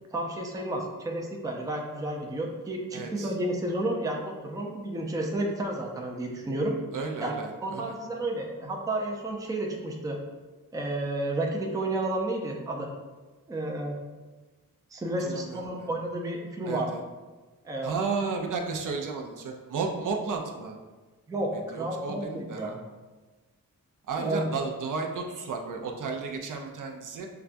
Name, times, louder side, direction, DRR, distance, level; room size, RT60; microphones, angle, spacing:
voice 1, 0.1-6.7 7.2-7.3 7.6-10.2 10.7-12.9 13.5-14.0 14.9-16.9 17.6-17.9 21.3-22.8 24.2-24.5, right 1 dB, 10° right, 0 dB, 0.4 m, -31 dB
voice 2, 2.9-3.3 6.9-8.0 15.2-15.9 16.7-17.0 17.8-20.8 21.5-22.7 24.1-27.3, right 4 dB, 65° right, 2 dB, 0.5 m, -33 dB
5.7 x 2.2 x 2.5 m, 1.3 s
wide cardioid pair, 120°, 34 cm